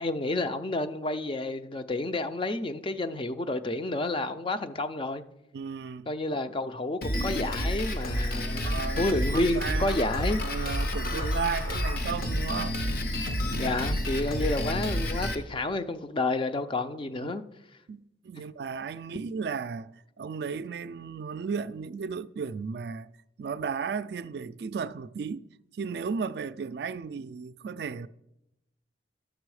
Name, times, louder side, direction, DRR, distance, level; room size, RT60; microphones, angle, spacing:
voice 1, 0.0-5.2 6.1-10.4 11.1-11.6 13.6-17.4 18.4-18.5, left 2 dB, 30° left, 0.4 m, -30 dB
voice 2, 5.5-6.1 8.7-10.0 10.4-12.8 13.3-13.7 17.1-17.4 17.9-19.9 20.2-23.1 23.4-25.5 25.7-28.1, right 5 dB, 65° right, 0.3 m, -35 dB
Drum kit, 7.0-15.3, equal, 55° left, 0.9 m, -29 dB
11.5 x 6.9 x 4.8 m
head